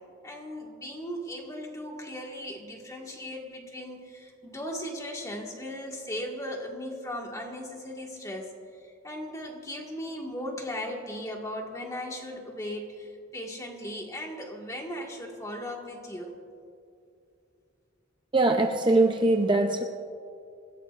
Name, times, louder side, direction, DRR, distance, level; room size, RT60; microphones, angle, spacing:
voice 1, 0.2-8.5 8.8-16.3, equal, 15° left, 0 dB, 1.8 m, -37 dB
voice 2, 18.3-19.8, right 2 dB, 25° right, 4 dB, 0.6 m, -22 dB
27.5 x 16.0 x 2.5 m, 2.5 s
head